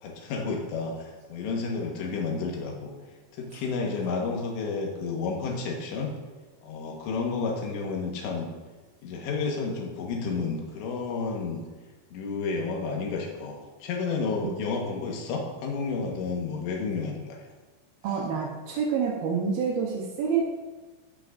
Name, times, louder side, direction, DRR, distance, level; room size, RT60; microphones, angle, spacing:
voice 1, 0.0-2.9 3.4-6.1 6.6-8.5 9.0-11.6 12.1-17.4, left 4 dB, 70° left, 0 dB, 3.3 m, -31 dB
voice 2, 18.0-20.4, right 6 dB, 90° right, -2 dB, 2.1 m, -27 dB
16.5 x 6.1 x 2.6 m, 1.3 s
omnidirectional pair, 5.7 m